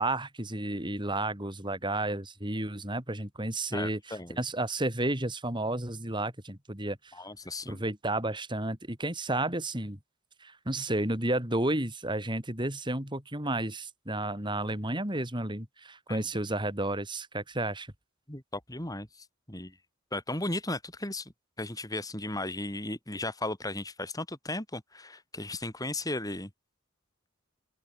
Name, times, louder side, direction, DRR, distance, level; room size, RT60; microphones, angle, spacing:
voice 1, 0.0-7.0 7.7-10.0 10.4-17.9, right 1 dB, 20° right, 4.8 m, -32 dB
voice 2, 3.7-4.4 7.1-7.8 16.1-16.2 18.3-19.1 19.5-19.7 20.1-21.3 21.6-26.5, left 2 dB, 15° left, 5.8 m, -35 dB
open air
head